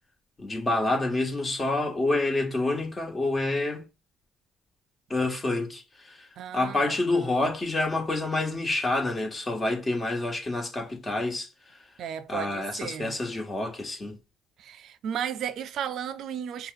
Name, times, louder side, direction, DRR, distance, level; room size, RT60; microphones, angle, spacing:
voice 1, 0.4-3.8 5.1-11.8 12.3-14.2, left 2 dB, 30° left, 1.5 m, -28 dB
voice 2, 6.4-7.0 12.0-13.2 14.6-16.7, right 9 dB, 65° right, 0.5 m, -34 dB
5.3 x 2.3 x 3.8 m
supercardioid pair, 70°, 0 cm